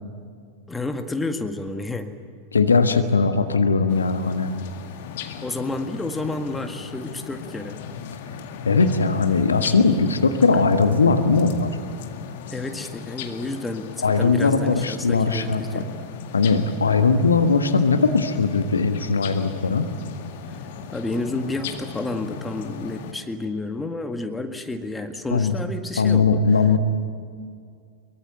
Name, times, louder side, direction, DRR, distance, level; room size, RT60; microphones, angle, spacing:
voice 1, 0.7-2.1 5.4-7.8 12.5-13.9 14.2-15.9 20.9-26.4, left 2 dB, 10° left, 6 dB, 1.8 m, -30 dB
voice 2, 2.5-4.5 8.6-11.7 14.0-15.8 16.3-19.8 25.3-25.5 26.0-26.8, left 4 dB, 75° left, 8 dB, 1.5 m, -19 dB
sound 1, 3.9-23.1, left 7 dB, 50° left, 2.1 m, -37 dB
23.0 x 23.0 x 9.0 m, 2.2 s
figure-of-eight pair, 90°, 0 cm